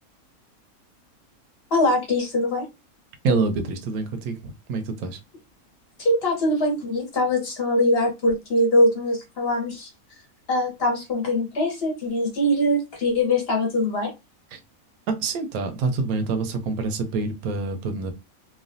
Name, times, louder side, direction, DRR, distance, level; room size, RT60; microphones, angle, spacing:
voice 1, 1.7-2.7 6.0-9.9 10.5-14.1, left 1 dB, 50° left, 1.1 m, -22 dB
voice 2, 3.2-5.2 14.5-14.6 15.1-18.1, right 3 dB, 85° right, 1.1 m, -26 dB
3.1 x 2.2 x 2.5 m
omnidirectional pair, 1.5 m